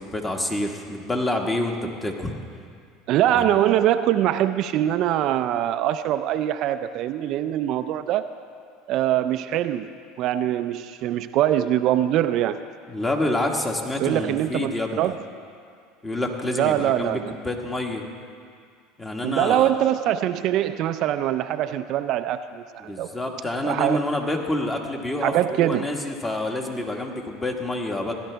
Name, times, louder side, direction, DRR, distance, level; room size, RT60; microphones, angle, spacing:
voice 1, 0.0-2.3 3.3-3.5 12.9-15.0 16.0-18.0 19.0-19.7 22.8-28.1, left 1 dB, 15° left, 2 dB, 1.5 m, -27 dB
voice 2, 3.1-8.3 8.9-9.9 10.2-12.6 14.0-15.2 16.5-17.4 19.2-23.1 23.6-24.0 25.2-25.9, right 12 dB, 55° right, 10 dB, 0.4 m, -23 dB
16.5 x 11.0 x 3.4 m, 2.2 s
supercardioid pair, 95°, 0 cm